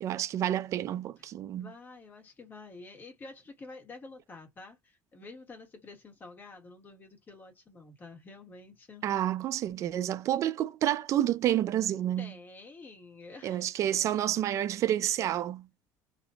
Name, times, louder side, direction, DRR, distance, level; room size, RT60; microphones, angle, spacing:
voice 1, 0.0-1.7 9.0-12.3 13.4-15.6, right 11 dB, 50° right, 0.4 m, -29 dB
voice 2, 1.2-9.0 12.2-13.7, left 3 dB, 30° left, 1.7 m, -49 dB
2.9 x 2.6 x 2.2 m
cardioid pair, 125°, 7 cm